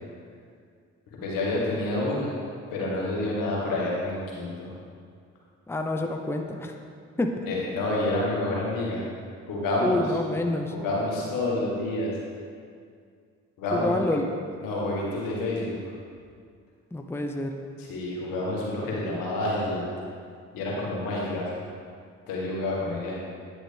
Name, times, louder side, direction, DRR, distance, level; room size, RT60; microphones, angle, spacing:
voice 1, 1.1-2.4 2.7-4.7 7.5-9.0 9.5-10.0 10.7-12.1 13.6-13.9 14.6-15.8 17.8-19.9 20.5-21.5 22.3-23.2, left 2 dB, 80° left, -4 dB, 1.7 m, -28 dB
voice 2, 5.7-6.7 7.2-7.3 9.8-10.7 13.7-14.3 16.9-17.5, left 1 dB, 5° left, 3 dB, 0.7 m, -27 dB
9.6 x 6.2 x 3.5 m, 2.2 s
hypercardioid pair, 45°, 34 cm